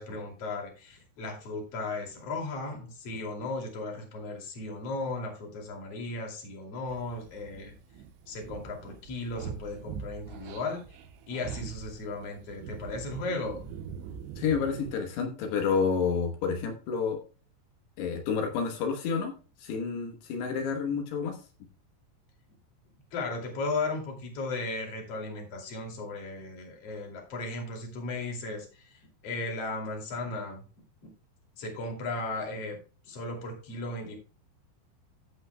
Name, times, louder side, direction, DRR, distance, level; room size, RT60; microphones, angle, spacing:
voice 1, 0.0-7.7 8.3-10.8 11.3-13.7 23.1-28.8 29.2-30.6 31.6-32.8 33.1-34.1, left 3 dB, 40° left, 1 dB, 2.8 m, -36 dB
sound 1, 6.9-14.9, right 7 dB, 80° right, 3.2 m, -43 dB
voice 2, 14.4-17.2 18.0-19.3 19.6-21.4, left 6 dB, 70° left, 3 dB, 3.0 m, -29 dB
15.0 x 7.7 x 2.2 m, 0.36 s
omnidirectional pair, 5.4 m